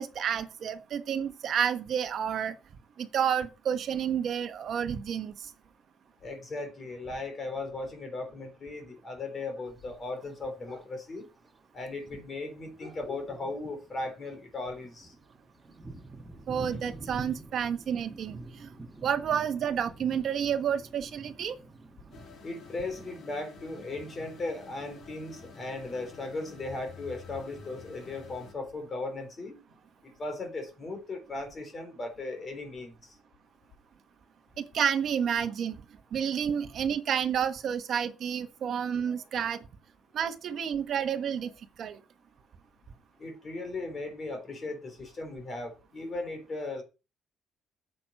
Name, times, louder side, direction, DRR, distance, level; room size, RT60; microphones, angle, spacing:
voice 1, 0.0-2.6 3.0-5.5 16.5-18.7 19.0-21.6 34.6-35.7 36.1-39.6 40.1-41.5 41.8-42.0, right 8 dB, 50° right, 1.3 m, -30 dB
voice 2, 6.2-11.3 11.7-15.1 16.7-16.9 22.4-29.6 30.0-33.1 43.2-46.8, left 2 dB, 30° left, 3.8 m, -37 dB
Thunder, 9.7-9.8 10.8-10.9 11.4-11.5 11.9-25.7, right 2 dB, 10° right, 1.5 m, -48 dB
sound 1, 22.1-28.5, left 5 dB, 55° left, 2.4 m, -50 dB
9.6 x 7.8 x 5.5 m
cardioid pair, 160°, 0 cm